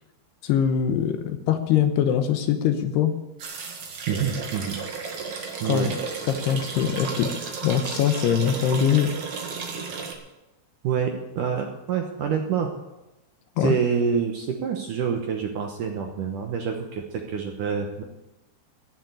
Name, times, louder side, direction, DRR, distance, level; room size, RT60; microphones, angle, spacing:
voice 1, 0.4-3.1 5.7-5.9 6.3-7.3 7.6-9.1 13.6-13.7, left 9 dB, 75° left, 7 dB, 2.9 m, -22 dB
sound 1, 3.4-10.1, right 5 dB, 50° right, 2.7 m, -33 dB
voice 2, 4.1-4.8 5.6-5.9 10.8-12.7 13.6-18.0, right 7 dB, 65° right, 3 dB, 2.1 m, -27 dB
15.5 x 7.4 x 9.7 m, 0.99 s
omnidirectional pair, 5.0 m